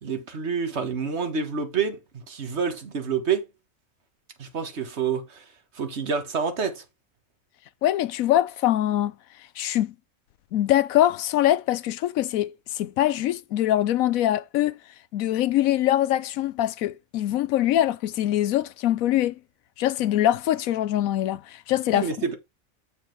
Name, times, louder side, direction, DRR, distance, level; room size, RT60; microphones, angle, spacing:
voice 1, 0.0-3.5 4.4-5.4 5.7-6.8 21.9-22.4, right 6 dB, 55° right, 1.6 m, -28 dB
voice 2, 7.8-9.1 9.6-9.9 10.5-14.8 15.1-19.4 19.8-22.1, left 13 dB, 85° left, 1.0 m, -23 dB
7.3 x 5.2 x 4.5 m
omnidirectional pair, 1.4 m